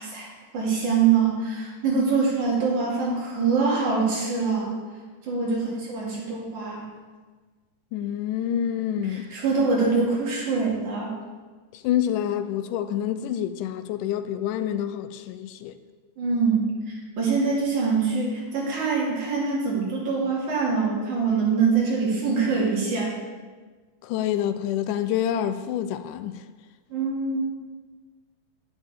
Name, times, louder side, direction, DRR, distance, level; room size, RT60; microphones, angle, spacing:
voice 1, 0.0-4.8 5.2-6.9 9.1-11.1 16.2-23.2 26.9-27.6, right 5 dB, 65° right, 3.9 m, -24 dB
voice 2, 7.9-9.3 11.7-15.7 24.0-26.4, left 10 dB, 85° left, 2.1 m, -27 dB
10.5 x 10.5 x 3.6 m
omnidirectional pair, 3.6 m